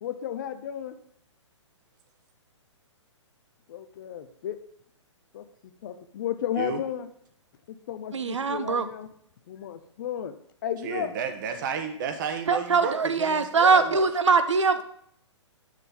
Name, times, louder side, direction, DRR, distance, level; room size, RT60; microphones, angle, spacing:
voice 1, 0.0-1.0 3.7-4.6 5.3-7.1 7.7-9.1 9.5-10.3 10.6-11.1, left 10 dB, 40° left, 10 dB, 0.5 m, -34 dB
voice 2, 8.1-8.9 12.5-14.8, right 4 dB, 75° right, 10 dB, 0.6 m, -22 dB
voice 3, 10.8-14.0, right 6 dB, 40° right, 7 dB, 1.0 m, -32 dB
6.7 x 6.4 x 3.5 m, 0.67 s
figure-of-eight pair, 120°, 16 cm